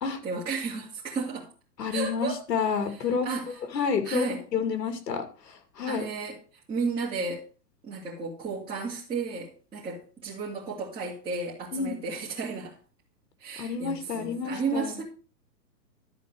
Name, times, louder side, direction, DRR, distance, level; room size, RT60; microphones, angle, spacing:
voice 1, 0.2-1.5 1.9-2.4 3.2-3.5 4.0-4.4 5.8-6.4 6.7-7.4 7.8-12.8 13.4-15.0, right 4 dB, 10° right, 2.6 m, -33 dB
voice 2, 1.8-6.1 11.7-12.0 13.6-15.0, left 6 dB, 75° left, 2.6 m, -30 dB
13.0 x 4.5 x 6.3 m
hypercardioid pair, 150°, 50 cm